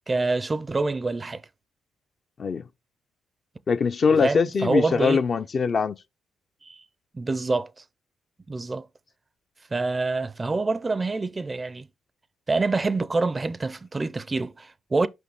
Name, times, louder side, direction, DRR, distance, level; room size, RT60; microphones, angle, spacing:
voice 1, 0.1-1.4 4.2-5.2 6.6-6.8 7.1-7.8 8.5-8.9 9.7-11.9 12.5-15.1, right 3 dB, 25° right, 0.4 m, -26 dB
voice 2, 3.7-6.0, left 5 dB, 45° left, 0.5 m, -22 dB
6.0 x 5.5 x 3.5 m
cardioid pair, 90°, 0 cm